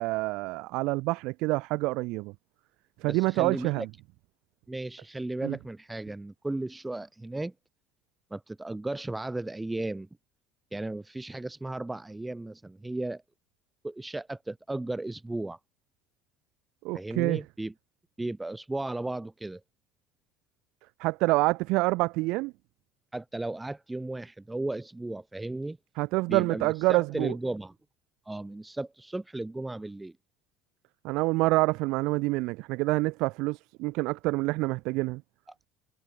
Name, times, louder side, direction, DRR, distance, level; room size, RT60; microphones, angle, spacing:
voice 1, 0.0-2.3 3.0-3.9 5.4-5.6 16.8-17.4 21.0-22.5 26.0-27.3 31.0-35.2, right 23 dB, 70° right, 0.5 m, -27 dB
voice 2, 3.0-3.9 4.7-7.5 8.3-10.1 10.7-13.2 13.8-15.6 16.9-17.7 18.2-19.6 23.1-25.8 26.3-27.7 28.3-30.1, right 2 dB, 10° right, 2.1 m, -35 dB
supercardioid pair, 115°, 0 cm